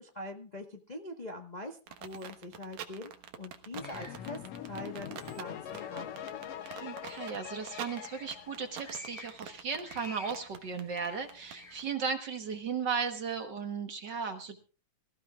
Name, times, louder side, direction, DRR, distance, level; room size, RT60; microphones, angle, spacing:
voice 1, 0.0-3.1 3.4-6.3, left 1 dB, 85° left, 2 dB, 0.3 m, -43 dB
sound 1, 1.9-11.8, right 9 dB, 75° right, 2.6 m, -45 dB
sound 2, 3.7-9.2, left 10 dB, 65° left, 1.8 m, -43 dB
sound 3, 3.8-11.9, left 2 dB, 25° left, 1.9 m, -53 dB
voice 2, 6.8-14.6, right 6 dB, 50° right, 6 dB, 1.5 m, -36 dB
24.0 x 14.5 x 2.4 m, 0.34 s
omnidirectional pair, 3.3 m